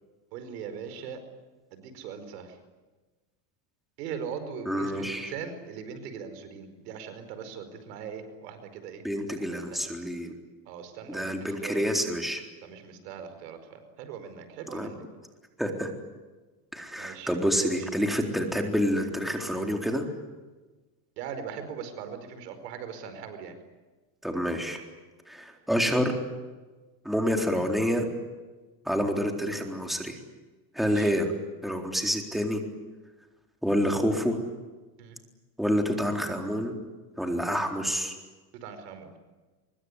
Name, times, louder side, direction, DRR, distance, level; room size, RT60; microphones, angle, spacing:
voice 1, 0.3-1.2 1.7-2.6 4.0-9.0 9.5-9.8 10.7-11.8 12.6-15.0 17.0-17.8 21.2-23.5 30.8-31.1 35.0-35.2 38.6-39.1, right 7 dB, 90° right, 9 dB, 5.0 m, -40 dB
voice 2, 4.7-5.3 9.0-10.3 11.1-12.4 14.7-14.9 15.6-15.9 16.7-20.1 24.2-24.8 25.3-26.1 27.0-28.0 28.8-30.2 30.7-31.3 31.6-32.6 33.6-34.4 35.6-36.7 37.2-38.2, equal, ahead, 2 dB, 3.9 m, -28 dB
24.5 x 23.0 x 9.8 m, 1.2 s
supercardioid pair, 125°, 47 cm